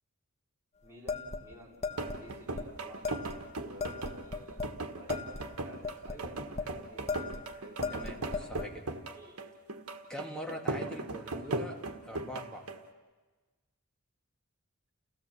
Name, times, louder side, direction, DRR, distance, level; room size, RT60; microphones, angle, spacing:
voice 1, 0.8-3.1 3.6-7.3 7.5-7.8 8.2-8.5 9.1-9.5, right 1 dB, 15° right, -4 dB, 3.2 m, -52 dB
sound 1, 1.1-2.2 2.5-2.7 3.0-3.4 3.8-4.8 5.1-6.7 7.1-7.5 7.8-8.7, left 4 dB, 30° left, 1.3 m, -37 dB
sound 2, 1.9-12.9, right 2 dB, 80° right, 1.4 m, -38 dB
voice 2, 7.9-8.8 10.1-12.7, equal, 5° left, 0 dB, 2.3 m, -43 dB
29.5 x 16.0 x 7.3 m, 1.3 s
head